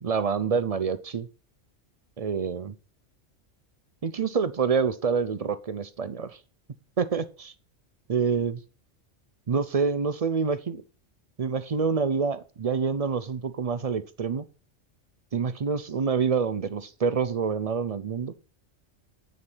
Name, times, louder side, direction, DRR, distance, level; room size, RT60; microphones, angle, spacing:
voice 1, 0.0-1.3 2.2-2.7 4.0-6.4 7.0-7.5 8.1-8.6 9.5-10.8 11.4-14.4 15.3-18.3, right 5 dB, 45° right, 13 dB, 0.5 m, -27 dB
9.7 x 4.0 x 6.0 m, 0.36 s
omnidirectional pair, 1.2 m